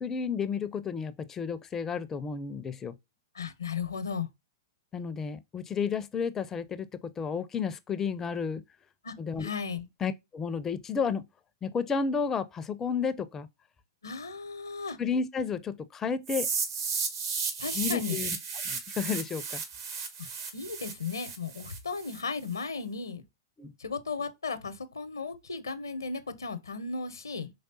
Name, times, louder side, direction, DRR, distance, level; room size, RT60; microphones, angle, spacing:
voice 1, 0.0-3.0 4.9-8.6 9.2-9.5 10.0-11.2 11.6-13.5 15.0-16.5 17.7-18.3 18.6-19.6 23.6-23.7, left 6 dB, 20° left, 0.4 m, -32 dB
voice 2, 3.3-4.3 9.0-9.9 14.0-15.0 17.6-18.2 20.2-20.3 20.5-23.2 23.8-27.5, left 5 dB, 85° left, 0.7 m, -35 dB
sound 1, 16.3-22.2, right 5 dB, 60° right, 1.3 m, -34 dB
4.7 x 3.3 x 2.6 m
hypercardioid pair, 110°, 2 cm